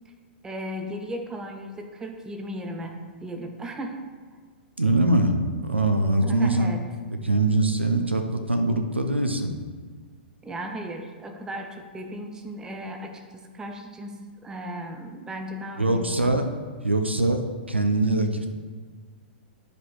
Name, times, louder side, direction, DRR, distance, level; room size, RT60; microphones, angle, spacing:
voice 1, 0.4-4.0 6.2-6.8 10.4-16.4, right 1 dB, 10° right, 5 dB, 0.7 m, -36 dB
voice 2, 4.8-6.7 7.2-9.5 15.8-16.5 16.8-17.4 17.7-18.5, right 2 dB, 85° right, 6 dB, 0.7 m, -22 dB
11.0 x 5.0 x 3.2 m, 1.5 s
figure-of-eight pair, 105°, 6 cm